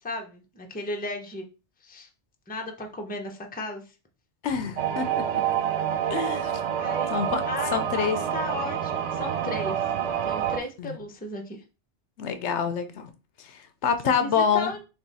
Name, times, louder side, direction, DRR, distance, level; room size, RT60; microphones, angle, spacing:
voice 1, 0.0-1.5 1.8-2.1 2.5-3.8 6.7-7.1 7.5-9.9 10.2-11.6 14.0-14.8, left 2 dB, 10° left, 3 dB, 0.6 m, -35 dB
voice 2, 4.4-5.4 6.1-6.5 7.1-7.4 7.7-8.2 10.8-11.0 12.2-13.1 13.4-14.7, left 7 dB, 75° left, 9 dB, 0.9 m, -27 dB
sound 1, 4.8-10.6, right 9 dB, 75° right, 1.0 m, -27 dB
3.5 x 3.5 x 4.0 m, 0.32 s
omnidirectional pair, 1.2 m